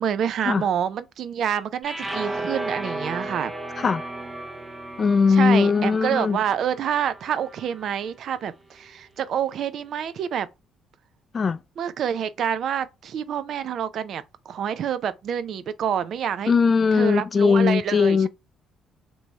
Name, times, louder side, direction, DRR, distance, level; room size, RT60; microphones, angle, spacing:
voice 1, 0.0-3.5 5.3-10.5 11.8-16.5 16.9-18.3, right 8 dB, 65° right, 0.4 m, -27 dB
sound 1, 1.8-8.1, right 2 dB, 25° right, 0.6 m, -35 dB
voice 2, 5.0-6.4 11.3-11.6 16.5-18.3, left 5 dB, 40° left, 0.4 m, -19 dB
3.0 x 2.7 x 3.2 m
cardioid pair, 85°, 0 cm